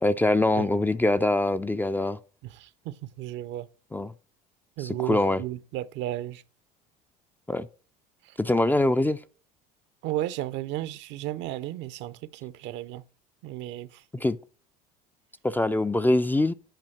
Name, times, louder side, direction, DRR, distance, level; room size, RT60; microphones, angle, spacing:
voice 1, 0.0-2.2 3.9-4.1 4.8-5.4 7.5-7.7 8.4-9.2 14.1-14.4 15.4-16.5, left 2 dB, 10° left, 0.4 m, -23 dB
voice 2, 2.4-3.7 4.8-6.4 8.2-8.4 10.0-13.0 13.4-14.0, right 14 dB, 60° right, 0.6 m, -34 dB
9.0 x 5.1 x 4.5 m
supercardioid pair, 85°, 21 cm